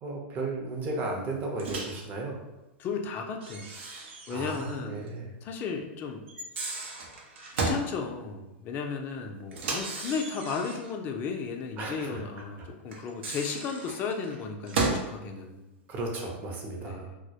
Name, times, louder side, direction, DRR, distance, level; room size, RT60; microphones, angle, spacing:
voice 1, 0.0-2.4 4.3-5.3 11.8-12.2 12.6-12.7 15.9-17.1, right 2 dB, 30° right, 0 dB, 0.6 m, -34 dB
Microwave oven, 1.6-2.0 3.4-4.8 5.1-5.2 6.3-7.9 9.5-10.9 12.9-15.1, right 3 dB, 80° right, 0.6 m, -34 dB
voice 2, 2.8-3.7 4.3-5.0 5.4-6.2 7.6-15.7 16.8-17.2, left 5 dB, 30° left, 3 dB, 0.3 m, -34 dB
2.2 x 2.0 x 2.7 m, 1.0 s
supercardioid pair, 135°, 6 cm